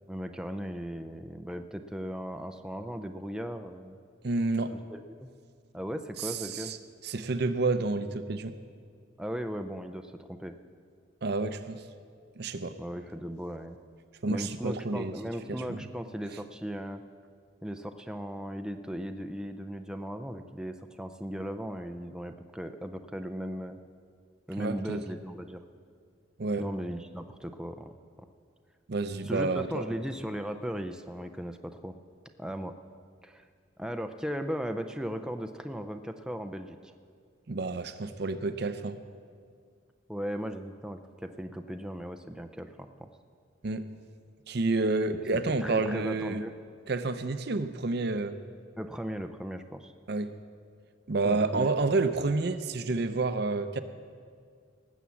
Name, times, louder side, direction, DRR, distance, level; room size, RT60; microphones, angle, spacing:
voice 1, 0.1-4.0 4.9-5.3 5.7-6.7 9.2-10.5 12.8-13.8 14.3-17.0 17.6-23.8 24.5-25.6 26.6-28.0 29.2-31.9 32.4-32.7 33.2-33.5 33.8-36.9 40.1-43.1 45.3-46.6 48.8-49.9 51.2-51.7, equal, 5° right, 7 dB, 0.4 m, -37 dB
voice 2, 4.2-4.8 6.2-6.8 7.0-8.5 11.2-11.8 12.4-12.8 14.2-15.1 15.5-15.8 24.6-25.0 26.4-26.7 28.9-29.8 37.5-39.0 43.6-43.9 44.5-46.4 46.9-48.4 50.1-50.3 51.1-53.8, right 3 dB, 60° right, 10 dB, 0.6 m, -29 dB
18.5 x 7.3 x 7.1 m, 2.1 s
head